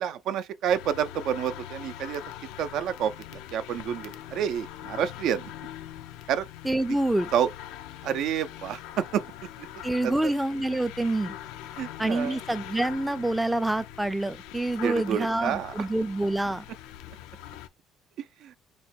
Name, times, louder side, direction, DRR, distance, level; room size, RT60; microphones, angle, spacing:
voice 1, 0.0-2.2 2.6-5.5 6.3-6.5 7.3-7.5 8.0-9.2 9.6-9.7 10.0-10.3 11.8-12.4 14.8-15.7 18.2-18.5, right 9 dB, 70° right, 0.4 m, -29 dB
sound 1, 0.7-17.7, left 12 dB, 90° left, 0.3 m, -42 dB
voice 2, 6.6-7.3 9.8-11.4 12.0-16.6, right 1 dB, 5° right, 0.4 m, -27 dB
3.0 x 2.2 x 4.1 m
cardioid pair, 95°, 0 cm